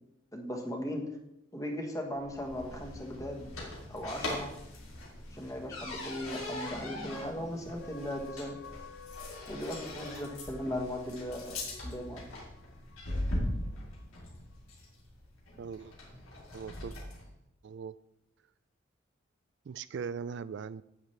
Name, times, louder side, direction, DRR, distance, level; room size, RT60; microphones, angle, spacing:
voice 1, 0.3-1.1 1.5-3.5 3.9-4.5 5.3-8.5 9.5-11.6 11.8-12.2, left 1 dB, 15° left, 1.2 m, -38 dB
sound 1, 2.2-17.3, left 1 dB, 90° left, 2.8 m, -40 dB
sound 2, 7.8-13.5 14.0-14.1, left 3 dB, 50° left, 0.8 m, -51 dB
voice 2, 15.6-15.9 16.5-16.9 17.6-18.0 19.7-20.8, right 6 dB, 55° right, 0.3 m, -39 dB
9.7 x 9.0 x 3.2 m
head